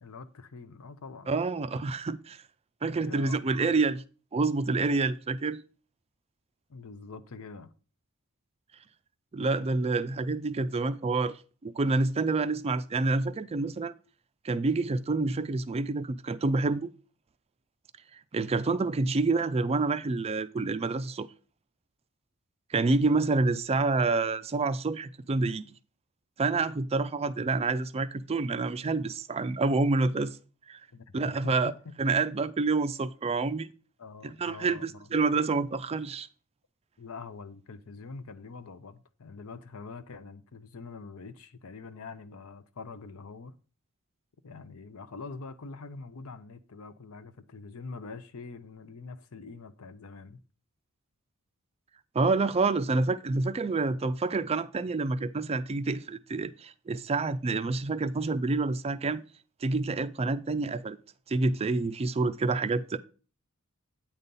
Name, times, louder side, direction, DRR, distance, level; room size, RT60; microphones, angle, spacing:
voice 1, 0.0-1.4 2.9-3.7 6.7-7.7 30.9-31.9 34.0-35.1 37.0-43.5 44.4-50.4, left 4 dB, 70° left, 0.7 m, -44 dB
voice 2, 1.3-2.4 2.8-4.0 4.3-5.6 9.3-13.9 14.4-16.9 18.3-21.3 22.7-25.6 26.4-30.4 30.7-30.8 31.1-31.7 32.0-33.7 34.2-36.3 52.1-59.2 59.6-61.0 61.3-63.0, right 3 dB, 25° right, 0.4 m, -28 dB
8.8 x 4.1 x 5.3 m
head